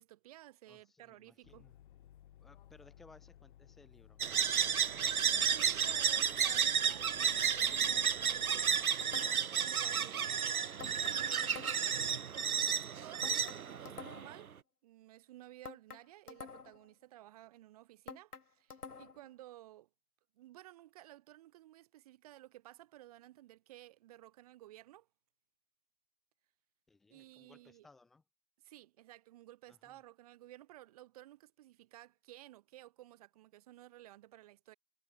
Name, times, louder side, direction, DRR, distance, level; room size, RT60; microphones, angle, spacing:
voice 1, 0.0-1.6 5.3-8.7 9.6-10.4 11.0-12.5 12.7-14.5 14.8-19.9 20.3-25.1 27.1-27.9 28.6-34.8, right 15 dB, 25° right, 2.3 m, -55 dB
voice 2, 0.7-1.8 2.4-4.2 9.3-9.7 11.1-11.4 26.9-28.2 29.7-30.0, left 3 dB, ahead, 0.6 m, -63 dB
sound 1, 1.4-8.9, left 11 dB, 35° left, 6.5 m, -59 dB
sound 2, 4.2-14.4, right 7 dB, 70° right, 0.7 m, -32 dB
sound 3, 9.0-9.6 10.8-12.0 13.2-14.4 15.6-16.9 18.1-19.3, left 5 dB, 85° left, 1.0 m, -49 dB
figure-of-eight pair, 140°, 44 cm